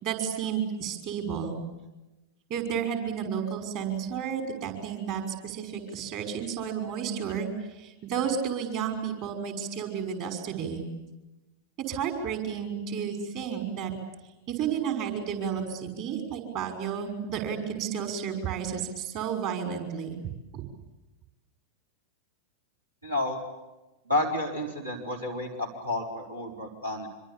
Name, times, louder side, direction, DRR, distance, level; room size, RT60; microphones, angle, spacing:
voice 1, 0.0-1.6 2.5-10.9 11.8-13.9 14.5-20.2 20.5-20.6, right 7 dB, 45° right, 6 dB, 5.8 m, -32 dB
voice 2, 23.0-23.4 24.1-27.1, left 1 dB, 85° right, 1 dB, 4.7 m, -30 dB
26.0 x 25.0 x 8.5 m, 1.0 s
figure-of-eight pair, 90°, 0 cm